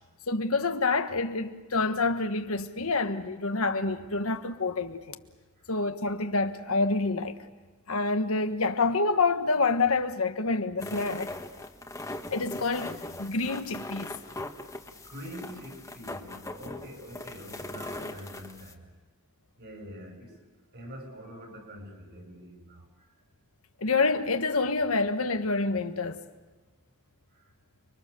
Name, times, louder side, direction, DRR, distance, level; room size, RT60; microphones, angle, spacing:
voice 1, 0.3-5.2 5.7-7.4 7.9-11.3 12.3-14.1 23.8-26.2, left 3 dB, 75° left, 1.4 m, -27 dB
sound 1, 10.8-18.7, left 2 dB, 15° left, 1.5 m, -40 dB
voice 2, 15.0-18.8 19.6-20.3 20.7-22.9, equal, 55° right, 7.5 m, -44 dB
30.0 x 23.0 x 6.9 m
head